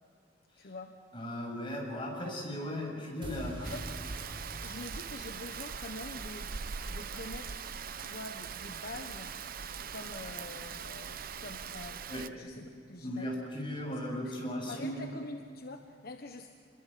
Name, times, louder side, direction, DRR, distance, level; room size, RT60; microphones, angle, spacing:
voice 1, 0.6-0.9 3.6-4.0 4.6-7.6 8.0-9.3 9.9-12.0 12.3-13.3 13.8-14.0 14.2-14.4 14.7-16.5, left 2 dB, 55° left, 5 dB, 1.3 m, -45 dB
voice 2, 1.1-3.7 12.1-12.2 13.0-15.1, equal, 30° left, -1 dB, 7.5 m, -37 dB
sound 1, 3.2-9.4, right 1 dB, 30° right, 6.3 m, -48 dB
Rain, 3.6-12.3, right 6 dB, 55° right, 0.8 m, -41 dB
27.5 x 22.0 x 7.7 m, 2.3 s
head